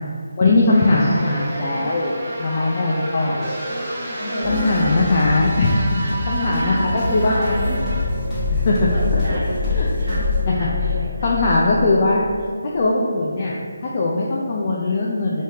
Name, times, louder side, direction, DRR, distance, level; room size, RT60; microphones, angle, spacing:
voice 1, 0.4-2.1 2.4-3.4 4.4-7.6 8.5-9.4 9.7-9.9 10.5-10.9 11.2-12.3 12.6-13.5 13.8-15.4, left 2 dB, 35° left, -4 dB, 0.4 m, -20 dB
sound 1, 0.7-8.0, right 1 dB, 25° right, 0.9 m, -30 dB
voice 2, 4.2-4.8 6.0-8.1 8.9-11.4, equal, 65° right, -7 dB, 1.2 m, -30 dB
sound 2, 4.4-10.4, left 1 dB, 10° left, 1.1 m, -27 dB
sound 3, 7.5-12.5 12.7-12.8, left 5 dB, 40° right, 0.5 m, -26 dB
3.4 x 3.1 x 2.8 m, 2.1 s
figure-of-eight pair, 165°, 0 cm